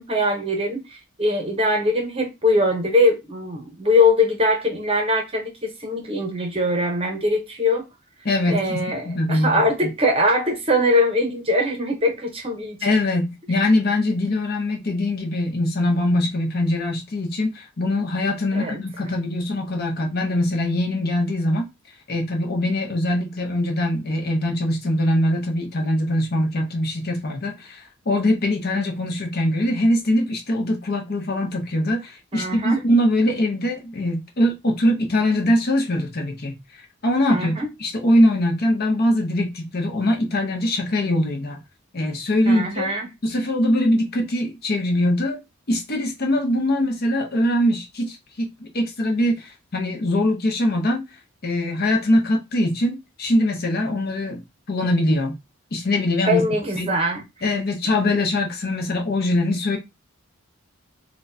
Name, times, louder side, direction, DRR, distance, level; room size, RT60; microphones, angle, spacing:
voice 1, 0.0-7.9 8.5-12.8 18.5-18.8 32.3-32.8 37.3-37.7 42.4-43.1 56.2-57.2, left 1 dB, 25° right, 0.8 m, -22 dB
voice 2, 8.2-9.9 12.8-21.7 22.1-36.6 37.0-41.6 41.9-42.9 43.2-45.4 45.7-51.0 51.4-54.4 54.7-55.4 55.7-56.5 56.7-56.9 57.4-59.8, left 1 dB, 45° left, 0.7 m, -22 dB
4.2 x 2.3 x 2.6 m
head